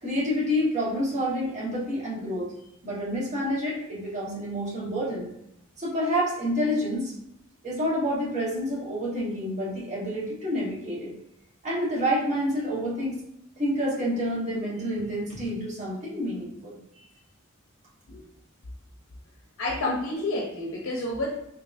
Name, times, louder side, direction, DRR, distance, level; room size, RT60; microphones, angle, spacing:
voice 1, 0.0-2.5 2.8-5.3 5.8-7.1 7.6-11.1 11.6-13.2 13.6-17.1, equal, 35° right, -7 dB, 1.1 m, -28 dB
voice 2, 19.6-21.4, left 2 dB, 65° left, -2 dB, 0.6 m, -29 dB
3.6 x 2.8 x 2.4 m, 0.78 s
head